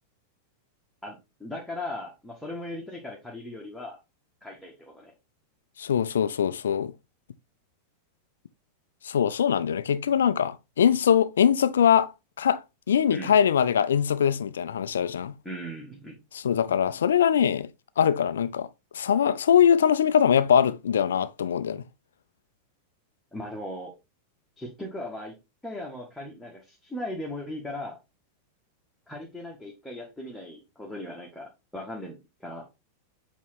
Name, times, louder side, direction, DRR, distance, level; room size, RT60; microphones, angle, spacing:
voice 1, 1.0-4.0 4.4-5.1 13.1-13.4 15.4-16.2 23.3-23.9 24.6-25.3 25.6-28.0 29.1-32.6, left 1 dB, 5° left, 1.7 m, -38 dB
voice 2, 5.8-6.9 9.0-12.1 12.4-15.3 16.3-17.7 18.0-18.7 18.9-21.8, left 8 dB, 65° left, 0.5 m, -22 dB
8.2 x 3.0 x 4.3 m
figure-of-eight pair, 90°, 0 cm